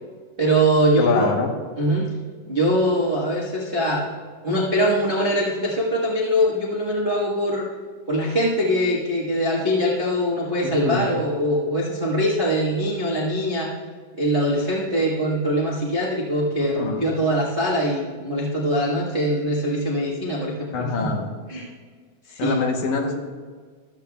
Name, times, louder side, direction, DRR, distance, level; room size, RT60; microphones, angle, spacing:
voice 1, 0.4-1.3 1.8-2.1 2.5-4.1 4.4-7.7 8.1-13.7 14.1-21.1 21.5-21.7 22.3-22.6, equal, 85° right, -5 dB, 0.4 m, -22 dB
voice 2, 1.0-1.5 10.6-11.2 16.6-17.1 20.7-21.3 22.4-23.1, left 4 dB, 70° left, 2 dB, 2.4 m, -25 dB
14.0 x 12.5 x 2.3 m, 1.5 s
omnidirectional pair, 3.8 m